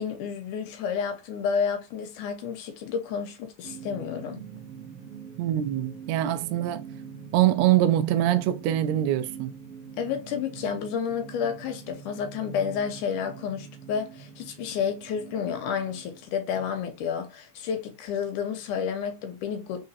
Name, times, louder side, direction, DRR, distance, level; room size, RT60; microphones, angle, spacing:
voice 1, 0.0-4.4 10.0-19.9, left 7 dB, 85° left, 2.5 m, -30 dB
sound 1, 3.6-16.3, right 7 dB, 65° right, 1.6 m, -44 dB
voice 2, 5.4-6.8 7.3-9.5, right 12 dB, 85° right, 1.5 m, -24 dB
4.8 x 3.9 x 2.6 m
omnidirectional pair, 3.6 m